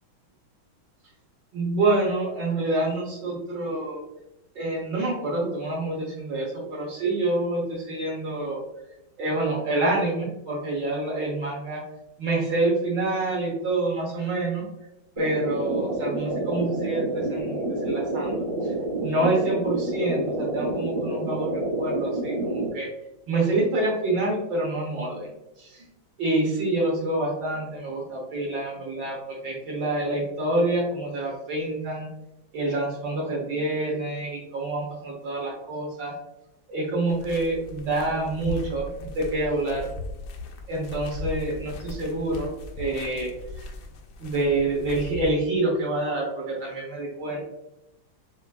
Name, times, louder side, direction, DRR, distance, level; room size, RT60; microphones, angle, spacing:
voice 1, 1.5-4.0 4.5-8.6 9.2-11.8 12.2-14.6 15.2-18.3 18.6-18.7 19.0-22.9 23.3-25.8 26.2-32.1 32.5-36.1 36.7-39.8 40.7-42.5 42.8-43.3 44.2-47.4, right 2 dB, 65° right, -3 dB, 1.6 m, -27 dB
sound 1, 15.2-22.7, right 2 dB, 30° right, 0.5 m, -28 dB
sound 2, 37.1-45.3, left 3 dB, 75° left, 1.3 m, -38 dB
6.9 x 2.6 x 2.3 m, 0.90 s
omnidirectional pair, 2.2 m